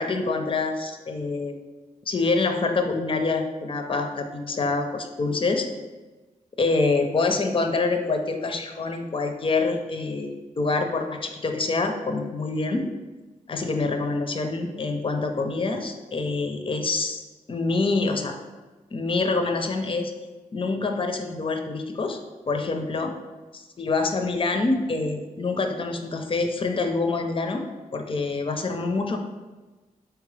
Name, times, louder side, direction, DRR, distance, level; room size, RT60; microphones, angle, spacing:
voice 1, 0.0-1.5 2.1-5.7 6.6-12.9 13.5-17.2 17.5-18.4 18.9-20.1 20.5-22.2 22.5-23.1 23.5-27.6 27.9-29.2, left 3 dB, 35° left, 5 dB, 0.5 m, -26 dB
3.6 x 3.3 x 3.3 m, 1.2 s
cardioid pair, 45°, 15 cm